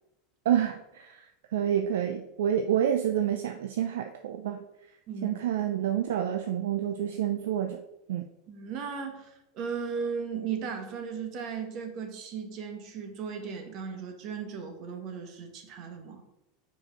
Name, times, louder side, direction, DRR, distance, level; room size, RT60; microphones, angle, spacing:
voice 1, 0.5-4.6 5.2-7.8 8.1-8.2, right 10 dB, 70° right, 5 dB, 0.5 m, -28 dB
voice 2, 5.1-5.4 8.5-16.2, right 6 dB, 50° right, 5 dB, 1.5 m, -36 dB
4.9 x 4.8 x 6.1 m, 0.88 s
hypercardioid pair, 85°, 0 cm